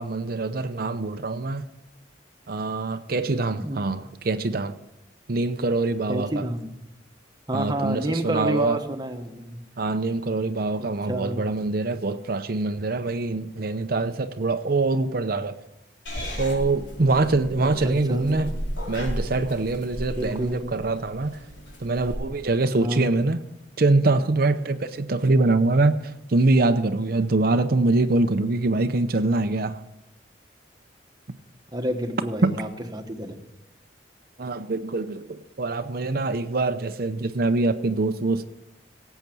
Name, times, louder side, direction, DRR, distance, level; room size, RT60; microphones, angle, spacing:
voice 1, 0.0-1.6 2.5-4.7 5.3-6.4 7.5-8.8 9.8-15.6 16.4-18.5 18.9-21.4 21.8-23.4 23.8-29.8 32.4-32.5 34.4-38.4, right 2 dB, 55° right, 0.7 m, -24 dB
voice 2, 6.1-6.7 7.5-9.6 10.8-11.5 17.8-18.5 20.1-20.8 22.7-23.1 31.7-33.5, right 1 dB, 20° right, 1.3 m, -29 dB
Purr / Meow, 16.1-22.1, equal, 80° left, 4.3 m, -34 dB
17.0 x 8.2 x 6.1 m
head